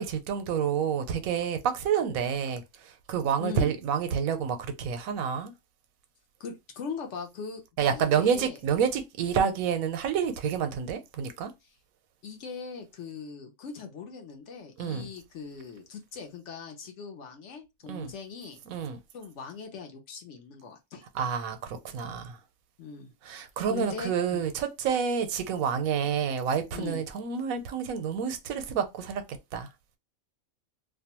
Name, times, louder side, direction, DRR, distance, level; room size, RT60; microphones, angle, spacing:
voice 1, 0.0-5.5 7.8-11.5 14.8-15.1 17.9-18.1 18.7-19.0 21.1-22.4 23.2-29.2 29.5-29.7, right 7 dB, 85° right, 1.0 m, -29 dB
voice 2, 3.4-3.7 6.4-8.6 12.2-18.6 19.1-21.0 22.8-23.1 23.7-24.4 26.7-27.0, left 5 dB, 65° left, 0.9 m, -40 dB
2.5 x 2.2 x 2.8 m
omnidirectional pair, 1.4 m